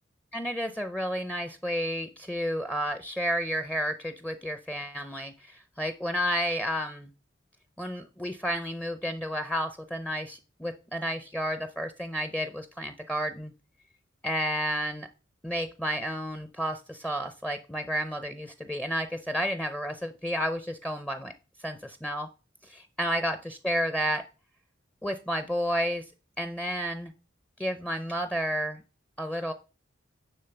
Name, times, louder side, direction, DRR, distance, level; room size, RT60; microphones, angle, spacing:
voice 1, 0.3-7.1 7.8-13.5 14.2-15.1 15.4-21.3 21.6-22.3 22.6-24.2 25.0-26.0 26.4-27.1 27.6-28.8 29.2-29.5, equal, 5° left, 9 dB, 0.5 m, -31 dB
9.9 x 3.6 x 7.0 m, 0.34 s
head